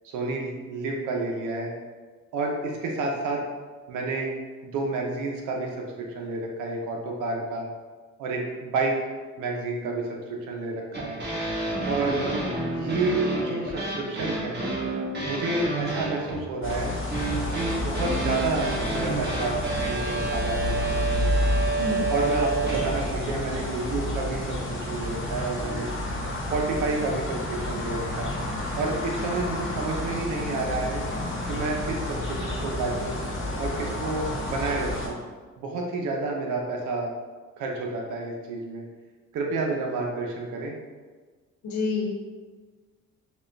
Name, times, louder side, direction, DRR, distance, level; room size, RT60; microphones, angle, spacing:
voice 1, 0.0-1.7 2.3-3.4 3.9-4.3 4.6-5.7 6.1-7.7 8.2-9.0 9.4-11.2 11.9-12.3 12.7-14.6 15.2-16.9 17.5-21.3 22.1-24.6 24.9-25.9 26.5-28.3 28.8-31.0 31.4-33.2 33.6-35.2 35.6-37.1 37.6-38.8 39.3-40.7, right 3 dB, 85° right, 0 dB, 0.7 m, -30 dB
sound 1, 10.9-23.1, right 3 dB, 35° right, 1.3 m, -29 dB
sound 2, 16.6-35.1, left 1 dB, 40° left, 1.0 m, -30 dB
voice 2, 41.6-42.1, left 3 dB, 70° left, -2 dB, 1.0 m, -27 dB
4.3 x 2.4 x 3.3 m, 1.4 s
cardioid pair, 90°, 30 cm